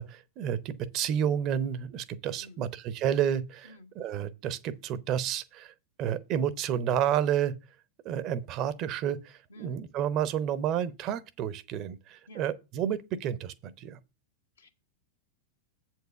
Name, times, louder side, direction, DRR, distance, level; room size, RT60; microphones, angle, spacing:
voice 1, 0.0-5.7 6.0-7.5 8.0-14.0, right 9 dB, 40° right, 0.7 m, -30 dB
voice 2, 2.4-2.7 3.6-3.9 9.5-9.8 12.3-12.5 14.6-14.7, left 2 dB, 75° left, 1.4 m, -51 dB
8.0 x 4.6 x 6.8 m
figure-of-eight pair, 90°, 0 cm